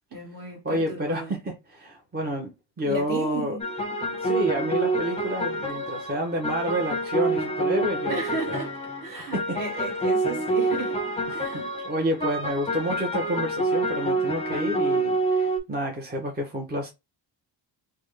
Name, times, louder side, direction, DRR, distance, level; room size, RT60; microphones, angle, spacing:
voice 1, 0.1-1.3 2.8-3.6 8.1-8.7 9.0-11.0 11.3-11.7, right 3 dB, 45° right, 1.3 m, -34 dB
voice 2, 0.6-3.6 4.2-8.2 8.5-8.6 9.3-9.8 11.3-16.9, equal, 20° right, 0.7 m, -29 dB
sound 1, 3.6-15.6, right 2 dB, 15° left, 0.7 m, -27 dB
3.4 x 2.2 x 3.2 m
wide cardioid pair, 130°, 45 cm